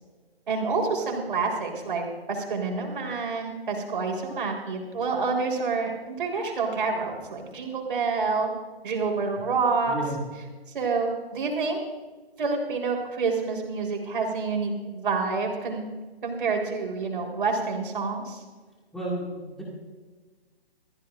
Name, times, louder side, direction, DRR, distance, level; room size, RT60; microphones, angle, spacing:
voice 1, 0.5-8.6 8.8-9.9 10.7-11.8 12.4-15.8 16.2-18.4, right 4 dB, 55° right, 1 dB, 4.0 m, -28 dB
voice 2, 18.9-19.6, right 1 dB, ahead, -6 dB, 2.1 m, -32 dB
24.0 x 15.0 x 2.5 m, 1.3 s
hypercardioid pair, 165°, 31 cm